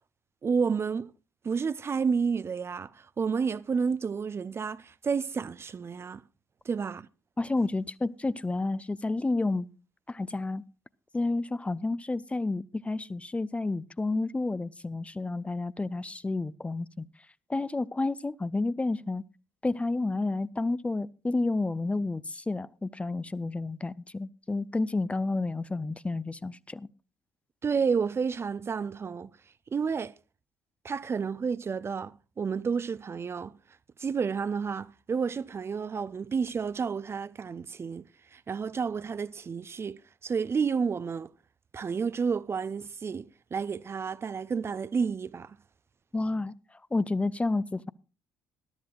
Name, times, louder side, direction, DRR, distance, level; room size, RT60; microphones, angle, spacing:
voice 1, 0.4-1.1 1.4-6.2 6.7-7.1 27.6-29.3 29.7-30.1 30.8-33.5 34.0-38.0 38.3-41.3 41.7-45.6, right 5 dB, 35° right, 0.5 m, -30 dB
voice 2, 7.4-9.7 10.1-10.6 11.1-17.1 17.5-19.2 19.6-26.9 46.1-46.5 46.9-47.9, left 2 dB, 15° left, 0.5 m, -30 dB
21.0 x 12.5 x 2.4 m
figure-of-eight pair, 50°, 8 cm